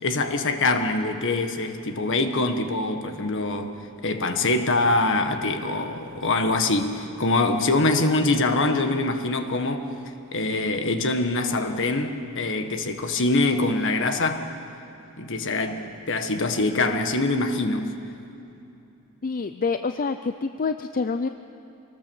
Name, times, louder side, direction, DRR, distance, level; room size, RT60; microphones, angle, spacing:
voice 1, 0.0-3.7 4.0-9.9 10.3-14.5 15.2-17.9, left 2 dB, 60° left, 1.5 m, -24 dB
voice 2, 19.2-21.3, left 4 dB, 40° left, 0.5 m, -27 dB
25.0 x 19.0 x 7.1 m
head